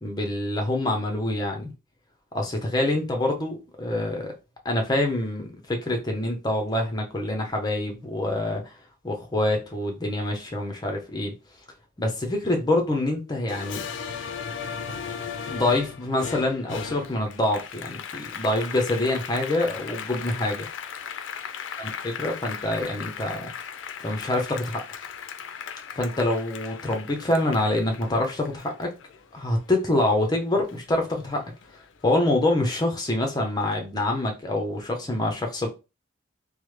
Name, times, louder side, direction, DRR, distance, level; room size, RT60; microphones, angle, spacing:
voice 1, 0.0-1.7 2.3-4.3 4.6-8.8 9.0-11.3 12.0-13.8 15.5-20.7 21.8-23.5 24.0-24.8 26.0-28.9 29.3-31.4 32.0-35.7, left 1 dB, 20° left, 0.6 m, -26 dB
Applause, 13.5-30.3 30.7-31.9, left 7 dB, 65° left, 0.4 m, -37 dB
3.1 x 2.0 x 3.1 m
head